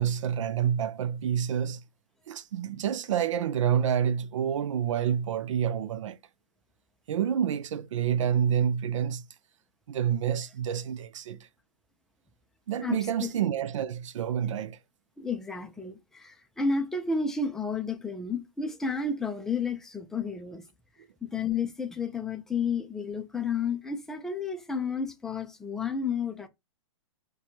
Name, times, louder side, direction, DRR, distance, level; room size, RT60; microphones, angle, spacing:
voice 1, 0.0-1.8 2.3-6.2 7.1-9.2 9.9-11.4 12.7-14.8, right 8 dB, 75° right, 0.4 m, -28 dB
voice 2, 12.8-13.3 15.2-20.6 21.2-26.5, left 4 dB, 5° left, 0.3 m, -31 dB
4.4 x 2.2 x 2.8 m
hypercardioid pair, 140°, 16 cm